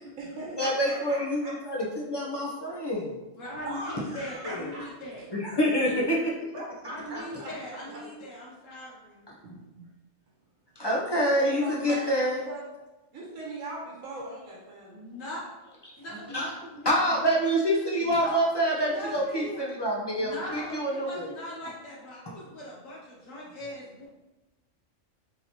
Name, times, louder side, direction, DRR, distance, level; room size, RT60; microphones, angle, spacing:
voice 1, 0.0-1.5 3.6-4.9 6.5-7.5 9.4-9.9 11.4-12.6 13.1-15.2, right 1 dB, 80° right, -3 dB, 1.3 m, -40 dB
voice 2, 0.6-3.1 4.4-4.7 5.3-6.5 9.3-9.4 10.8-12.4 15.8-15.9 16.3-16.5 16.8-21.3 22.3-22.4, equal, 30° left, -3 dB, 0.5 m, -27 dB
voice 3, 3.3-5.3 6.8-9.3 14.9-15.4 16.0-17.3 18.0-18.4 18.8-19.6 20.2-24.1, left 1 dB, 75° left, -5 dB, 1.2 m, -40 dB
4.2 x 3.8 x 2.9 m, 1.1 s
omnidirectional pair, 1.4 m